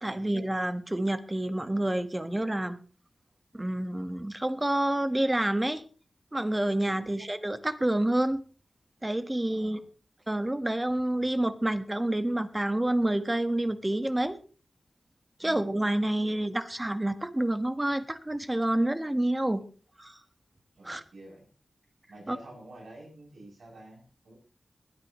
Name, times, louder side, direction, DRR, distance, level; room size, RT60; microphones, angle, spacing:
voice 1, 0.0-2.8 3.5-5.8 6.3-8.4 9.0-9.8 10.3-14.4 15.4-19.6 20.0-20.2 20.8-21.0 22.3-22.4, right 1 dB, 20° right, 10 dB, 1.4 m, -28 dB
voice 2, 9.5-9.9 15.4-15.7 16.0-16.4 20.8-21.5 22.1-24.3, right 1 dB, 85° right, -2 dB, 7.8 m, -49 dB
20.0 x 12.5 x 3.1 m, 0.39 s
wide cardioid pair, 75°, 0 cm